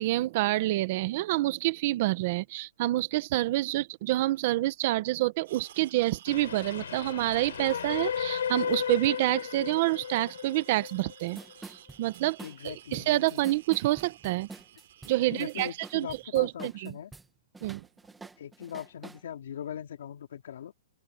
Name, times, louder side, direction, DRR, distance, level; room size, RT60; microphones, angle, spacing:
voice 1, 0.0-11.4 11.7-12.4 12.6-14.5 15.0-16.1 16.3-16.9 17.6-17.8, right 17 dB, 35° right, 0.9 m, -27 dB
sound 1, 5.4-16.3, right 11 dB, 55° right, 3.9 m, -54 dB
Train, 6.3-11.5, left 8 dB, 80° left, 5.6 m, -35 dB
sound 2, 10.9-11.0 11.2-17.3 17.5-19.2, right 3 dB, 5° right, 1.3 m, -47 dB
voice 2, 12.4-13.4 15.2-17.1 18.4-20.7, left 9 dB, 65° left, 2.8 m, -40 dB
open air
hypercardioid pair, 170°, 0 cm